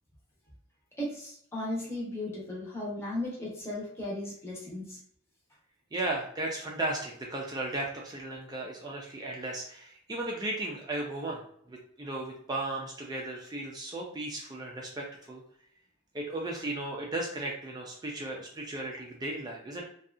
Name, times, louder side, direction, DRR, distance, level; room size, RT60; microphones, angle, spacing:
voice 1, 1.0-5.0, left 1 dB, 10° left, -6 dB, 0.8 m, -36 dB
voice 2, 5.9-15.4 16.1-19.8, right 2 dB, 20° right, -2 dB, 0.4 m, -35 dB
2.6 x 2.3 x 2.4 m, 0.67 s
head